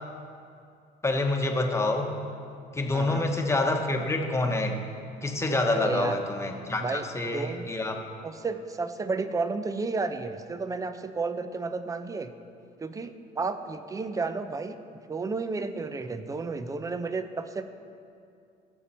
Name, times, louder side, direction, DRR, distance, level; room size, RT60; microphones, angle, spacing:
voice 1, 1.0-2.1 2.7-4.8 5.2-8.0, left 2 dB, 15° left, 3 dB, 1.2 m, -27 dB
voice 2, 2.9-3.3 5.7-6.2 6.8-7.7 8.2-12.3 12.8-14.8 15.1-17.6, right 4 dB, 20° right, 10 dB, 0.6 m, -32 dB
18.5 x 6.8 x 4.4 m, 2.4 s
cardioid pair, 110°, 17 cm